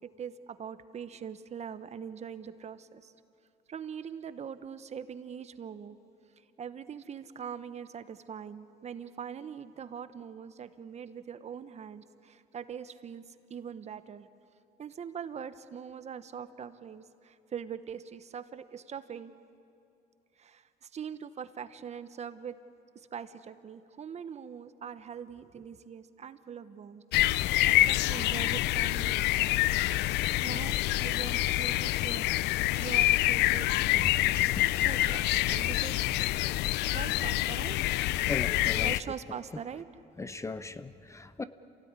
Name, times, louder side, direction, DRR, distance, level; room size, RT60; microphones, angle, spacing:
voice 1, 0.0-3.1 3.7-6.0 6.6-14.3 14.8-19.3 20.4-22.6 22.9-27.0 27.6-32.3 32.8-33.7 34.8-36.2 36.9-38.0 38.8-39.9, right 7 dB, 40° right, 12 dB, 1.1 m, -42 dB
sound 1, 27.1-39.0, left 16 dB, 85° left, 0.5 m, -27 dB
voice 2, 33.9-34.6 38.3-38.9 40.2-41.4, left 3 dB, 15° left, 13 dB, 0.8 m, -38 dB
27.5 x 17.5 x 9.7 m, 2.7 s
cardioid pair, 110°, 17 cm